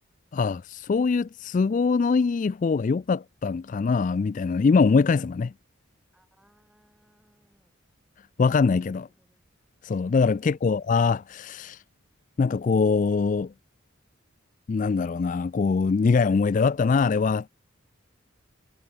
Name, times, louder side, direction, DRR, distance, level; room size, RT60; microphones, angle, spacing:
voice 1, 0.3-5.5 8.4-9.1 9.8-11.8 12.4-13.5 14.7-17.5, left 4 dB, 40° left, 0.3 m, -23 dB
voice 2, 6.1-7.7 8.9-9.5 10.4-11.0, equal, 5° right, 5.2 m, -66 dB
head